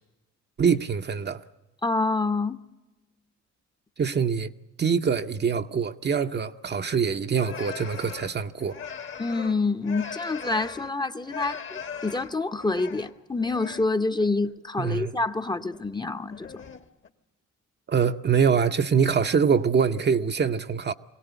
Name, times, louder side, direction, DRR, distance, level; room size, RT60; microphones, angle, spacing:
voice 1, 0.6-1.4 4.0-4.5 4.8-8.8 14.8-15.1 17.9-20.9, right 6 dB, 35° right, 0.7 m, -24 dB
voice 2, 1.8-2.6 9.2-16.6, left 3 dB, 15° left, 0.8 m, -27 dB
sound 1, 7.3-11.0 11.2-13.9 14.2-14.5 15.6-16.0 16.3-17.1, left 6 dB, 40° left, 1.2 m, -40 dB
22.5 x 17.5 x 8.1 m
cardioid pair, 90°, 30 cm